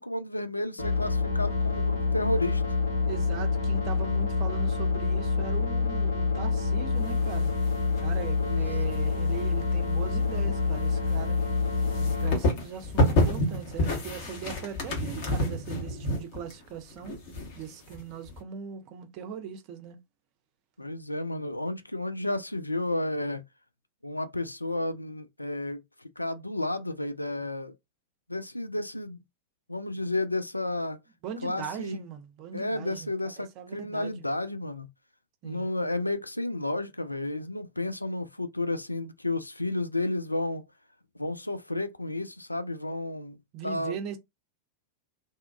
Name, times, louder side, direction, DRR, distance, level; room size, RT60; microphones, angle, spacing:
voice 1, 0.0-2.6 8.4-8.7 20.8-23.4 24.0-27.7 28.3-29.2 29.7-31.0 31.4-32.0 32.5-34.9 35.4-40.6 41.2-43.9, left 2 dB, 85° left, 0.3 m, -32 dB
sound 1, 0.8-12.4, left 4 dB, 70° left, 1.3 m, -27 dB
voice 2, 3.1-7.5 8.0-11.4 12.0-17.2 17.5-20.0 31.2-33.1 33.4-34.1 35.4-35.7 43.5-44.2, right 7 dB, 40° right, 0.6 m, -39 dB
sound 2, 7.0-8.4 8.7-18.4, left 1 dB, 50° left, 1.0 m, -29 dB
2.7 x 2.3 x 2.3 m
figure-of-eight pair, 90°, 0 cm